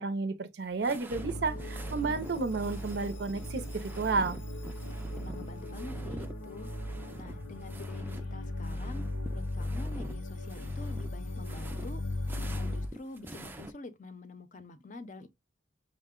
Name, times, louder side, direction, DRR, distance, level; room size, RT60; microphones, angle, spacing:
voice 1, 0.0-4.4, right 4 dB, 60° right, 0.5 m, -32 dB
sound 1, 0.6-8.3 8.5-13.7, right 1 dB, 10° right, 0.4 m, -47 dB
sound 2, 1.1-12.9, left 1 dB, 80° left, 0.7 m, -37 dB
voice 2, 5.2-6.7 7.1-12.0 12.4-15.3, left 2 dB, 40° left, 0.6 m, -47 dB
5.6 x 2.1 x 3.6 m
head